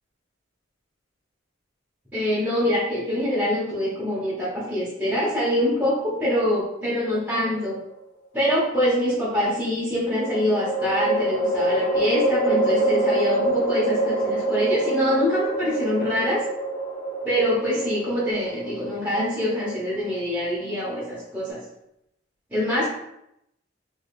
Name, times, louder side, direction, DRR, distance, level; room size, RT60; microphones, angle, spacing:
voice 1, 2.1-7.8 8.3-16.4 17.2-21.6 22.5-22.9, left 1 dB, 10° right, -10 dB, 1.0 m, -24 dB
sound 1, 7.1-7.9 10.2-21.5, right 2 dB, 85° left, 1.4 m, -26 dB
3.5 x 3.2 x 2.4 m, 0.80 s
head